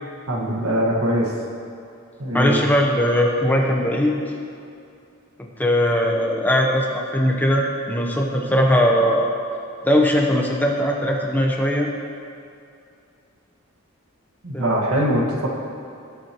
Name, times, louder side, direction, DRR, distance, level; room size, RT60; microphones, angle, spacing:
voice 1, 0.3-1.3 2.2-2.7 14.4-15.5, equal, 85° right, -1 dB, 1.9 m, -22 dB
voice 2, 2.3-4.2 5.4-9.3 9.8-11.9 14.5-14.8, equal, 10° left, 0 dB, 0.9 m, -20 dB
20.5 x 7.7 x 3.1 m, 2.5 s
head